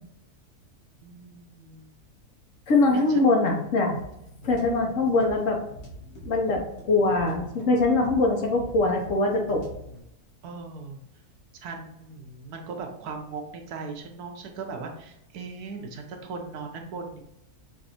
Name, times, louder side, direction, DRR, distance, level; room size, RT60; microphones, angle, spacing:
voice 1, 1.0-1.8 2.9-3.3 10.4-11.0 11.6-17.2, right 4 dB, 80° right, 3 dB, 1.2 m, -38 dB
voice 2, 2.7-4.0 4.4-5.6 6.2-9.6, left 2 dB, 60° left, 2 dB, 1.1 m, -22 dB
sound 1, 3.9-10.0, equal, 75° left, 1.7 m, -43 dB
6.1 x 2.6 x 2.8 m, 0.80 s
omnidirectional pair, 1.6 m